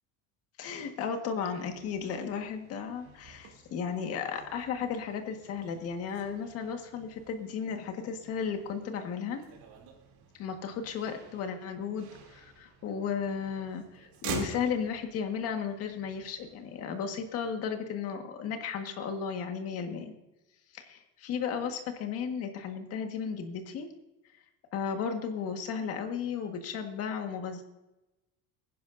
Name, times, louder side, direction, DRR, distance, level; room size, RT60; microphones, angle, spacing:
voice 1, 0.6-9.4 10.3-20.1 20.7-23.9 24.7-27.6, left 6 dB, 40° left, 5 dB, 1.6 m, -34 dB
Motor vehicle (road), 1.4-17.3, right 5 dB, 55° right, 3.0 m, -47 dB
20.5 x 10.5 x 2.6 m, 0.98 s
cardioid pair, 175°, 35 cm